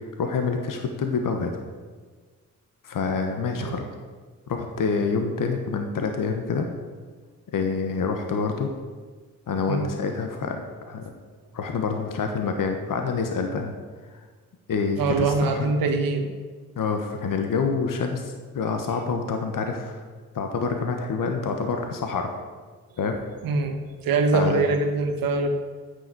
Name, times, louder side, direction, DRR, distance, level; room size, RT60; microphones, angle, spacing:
voice 1, 0.2-1.5 2.8-3.9 4.5-6.7 7.5-8.7 9.5-11.1 11.5-13.7 14.7-15.7 16.8-20.0 20.3-22.3 23.0-23.2 24.3-24.6, left 5 dB, 70° left, 4 dB, 1.3 m, -27 dB
voice 2, 15.0-16.3 23.4-25.5, right 3 dB, 85° right, 4 dB, 1.1 m, -23 dB
9.1 x 6.9 x 7.8 m, 1.4 s
supercardioid pair, 45°, 34 cm